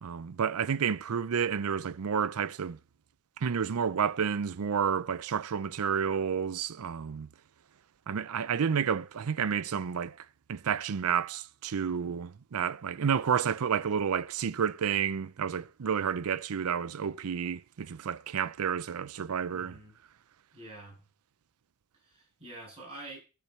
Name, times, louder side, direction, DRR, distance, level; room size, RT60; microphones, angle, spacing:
voice 1, 0.0-2.8 3.4-7.3 8.1-10.2 10.5-19.8, right 7 dB, 75° right, 0.5 m, -30 dB
voice 2, 19.5-20.0 20.5-21.0 22.0-23.2, right 2 dB, 25° right, 7.5 m, -47 dB
12.0 x 4.5 x 7.9 m
head